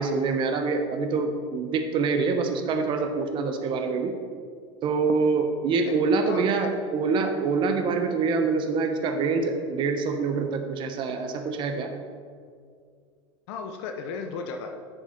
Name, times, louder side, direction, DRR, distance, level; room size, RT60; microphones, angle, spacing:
voice 1, 0.0-4.2 4.8-11.9, right 4 dB, 30° right, 5 dB, 0.9 m, -25 dB
voice 2, 5.9-6.7 13.5-14.8, left 5 dB, 65° left, 5 dB, 0.9 m, -35 dB
7.8 x 7.3 x 5.8 m, 2.1 s
supercardioid pair, 155°, 15 cm